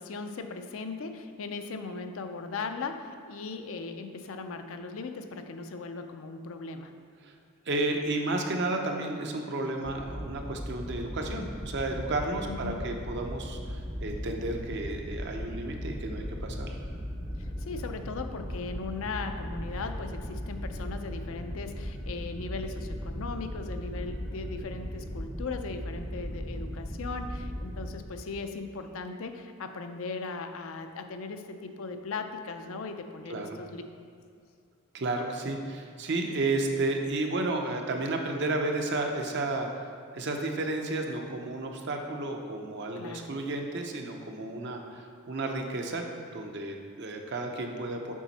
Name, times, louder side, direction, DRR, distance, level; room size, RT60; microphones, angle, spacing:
voice 1, 0.0-7.0 12.4-12.8 17.4-33.8 43.0-43.3, left 4 dB, 65° left, 7 dB, 0.5 m, -38 dB
voice 2, 7.7-16.8 33.3-33.6 34.9-39.9 40.1-46.0 46.3-48.1, right 2 dB, 50° right, 3 dB, 0.7 m, -32 dB
sound 1, 9.8-27.9, equal, ahead, 0.6 m, -37 dB
7.3 x 5.1 x 4.1 m, 2.2 s
head